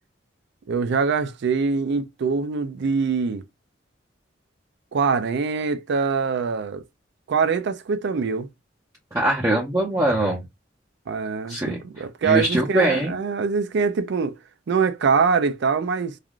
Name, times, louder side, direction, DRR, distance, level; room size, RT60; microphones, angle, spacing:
voice 1, 0.7-3.4 4.9-6.8 7.3-8.5 11.1-14.4 14.7-16.2, right 5 dB, 65° right, 0.4 m, -23 dB
voice 2, 9.1-10.4 11.5-11.8 12.2-13.1, right 1 dB, 15° right, 0.7 m, -22 dB
3.4 x 2.3 x 2.3 m
head